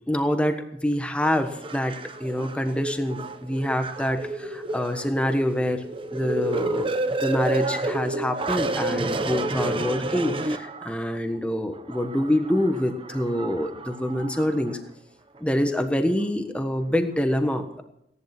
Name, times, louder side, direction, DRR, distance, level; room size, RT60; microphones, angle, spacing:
voice 1, 0.1-1.9 2.2-6.9 7.2-14.8 15.4-17.8, equal, 5° left, 6 dB, 1.3 m, -26 dB
sound 1, 1.2-11.1 11.7-14.8 15.4-15.5, right 2 dB, 30° right, 0.9 m, -30 dB
16.5 x 11.0 x 6.0 m, 0.78 s
head